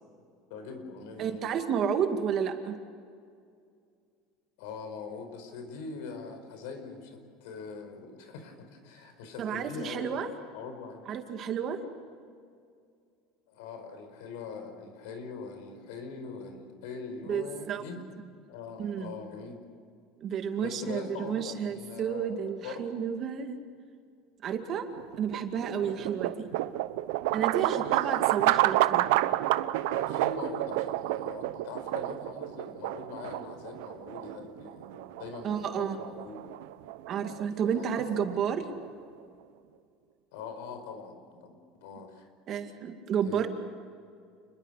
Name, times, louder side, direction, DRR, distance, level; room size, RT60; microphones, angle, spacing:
voice 1, 0.5-1.5 4.6-10.3 10.5-11.1 12.3-12.4 13.5-18.0 18.5-19.6 20.6-22.9 25.8-26.1 26.6-26.8 27.8-28.0 29.8-36.4 37.6-37.8 40.3-41.5 41.8-42.3 43.2-43.5, left 5 dB, 80° left, 7 dB, 4.9 m, -42 dB
voice 2, 1.2-2.8 9.4-10.3 11.1-11.8 17.3-17.8 18.8-19.1 20.2-23.6 24.4-24.9 25.2-26.5 27.3-29.1 35.4-36.0 37.1-38.6 42.5-43.5, right 7 dB, 35° right, 6 dB, 2.2 m, -31 dB
sound 1, 24.9-39.0, right 16 dB, 80° right, 0.9 m, -30 dB
29.0 x 21.5 x 6.6 m, 2.2 s
cardioid pair, 155°, 0 cm